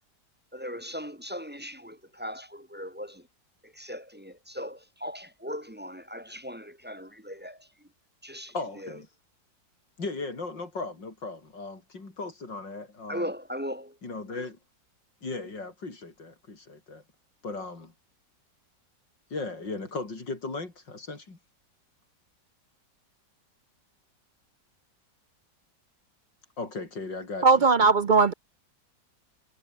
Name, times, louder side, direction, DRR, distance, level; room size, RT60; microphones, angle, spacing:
voice 1, 0.5-3.2 3.8-7.6 8.2-8.5 13.1-13.9, equal, 5° right, 1.5 m, -38 dB
voice 2, 8.5-9.1 10.0-13.3 14.0-14.6 15.2-17.0 17.4-17.9 19.3-21.4 26.6-27.5, left 3 dB, 80° left, 5.6 m, -37 dB
voice 3, 27.4-28.3, right 4 dB, 85° right, 0.4 m, -19 dB
omnidirectional pair, 1.9 m